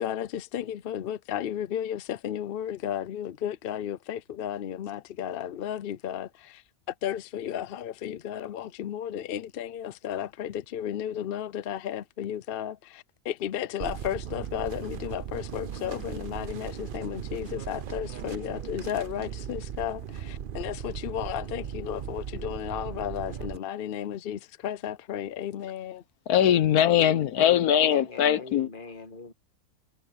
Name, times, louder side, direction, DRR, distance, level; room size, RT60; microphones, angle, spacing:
voice 1, 0.0-26.0, left 10 dB, 60° left, 0.6 m, -34 dB
sound 1, 13.8-23.6, right 9 dB, 55° right, 0.6 m, -37 dB
voice 2, 26.3-28.7, left 10 dB, 85° left, 1.4 m, -21 dB
voice 3, 27.4-29.3, left 3 dB, 35° left, 1.7 m, -43 dB
omnidirectional pair, 1.6 m